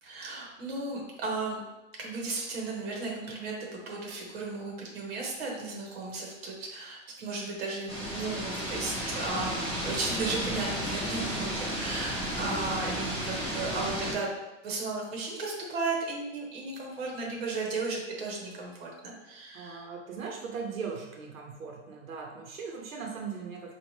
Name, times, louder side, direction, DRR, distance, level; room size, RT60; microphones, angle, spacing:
voice 1, 0.0-1.6 2.0-14.3 14.6-19.9, right 3 dB, 50° right, -1 dB, 1.1 m, -35 dB
sound 1, 7.9-14.1, equal, 15° right, 0.5 m, -33 dB
voice 2, 19.5-23.7, right 5 dB, 90° right, 0 dB, 0.9 m, -39 dB
4.3 x 2.5 x 3.1 m, 1.0 s
hypercardioid pair, 175°, 39 cm